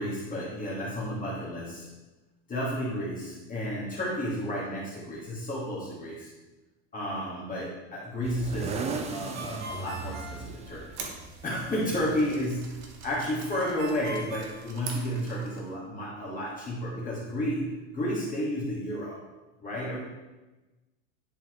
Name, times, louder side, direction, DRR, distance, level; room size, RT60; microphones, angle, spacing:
voice 1, 0.0-1.9 2.5-6.3 6.9-10.8 11.4-19.2 19.6-20.0, equal, 25° left, -6 dB, 1.8 m, -32 dB
sound 1, 8.2-13.2, right 5 dB, 20° right, 0.4 m, -38 dB
Ringtone, 9.3-11.3 13.5-15.4, right 1 dB, 70° right, 1.5 m, -42 dB
sound 2, 10.9-15.7, right 5 dB, 55° right, 1.2 m, -45 dB
10.5 x 4.1 x 3.1 m, 1.1 s
supercardioid pair, 140°, 35 cm